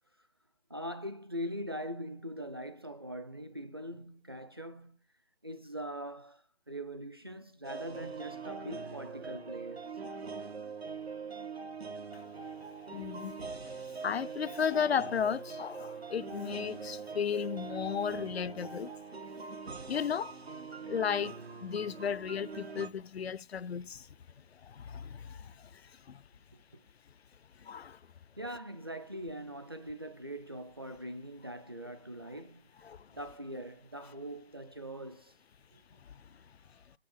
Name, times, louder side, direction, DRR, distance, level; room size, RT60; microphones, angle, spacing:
voice 1, 0.7-5.0 5.4-9.9 28.4-32.7 33.1-35.4 35.7-35.8, equal, 25° right, 0.6 m, -42 dB
sound 1, 7.6-22.9, right 5 dB, 80° right, 1.7 m, -43 dB
voice 2, 12.9-13.3 14.0-18.9 19.9-20.4 20.9-24.1 24.6-25.7 26.1-26.2 27.6-28.0 32.9-33.0, left 7 dB, 75° left, 0.5 m, -34 dB
7.1 x 6.6 x 3.8 m
figure-of-eight pair, 155°, 31 cm